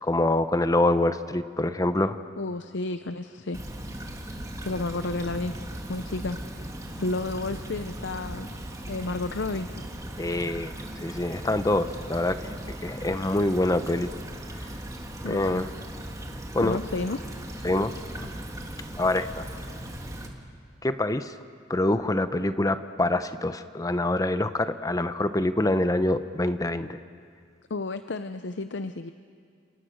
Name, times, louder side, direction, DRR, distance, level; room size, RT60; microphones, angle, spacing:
voice 1, 0.0-2.2 10.2-10.7 11.0-12.5 12.8-14.1 15.2-15.7 16.5-16.8 17.6-18.3 19.0-19.4 20.8-21.3 21.7-27.0, left 1 dB, 20° left, 11 dB, 0.7 m, -25 dB
voice 2, 2.4-3.6 4.6-5.6 5.9-6.4 6.9-8.5 8.9-9.7 15.2-15.7 16.6-17.2 27.7-29.1, left 2 dB, 65° left, 10 dB, 0.7 m, -31 dB
Stream / Trickle dribble, 3.5-20.3, right 1 dB, 15° right, 2.0 m, -38 dB
29.0 x 28.0 x 6.5 m, 2.3 s
head